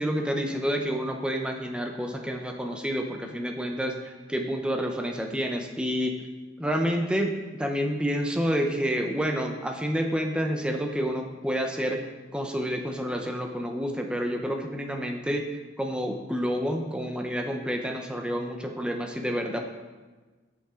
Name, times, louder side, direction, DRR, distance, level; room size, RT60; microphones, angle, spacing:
voice 1, 0.0-6.1 6.6-12.0 12.3-15.4 15.8-19.6, equal, 5° right, 3 dB, 0.6 m, -29 dB
8.5 x 5.8 x 3.7 m, 1.3 s
head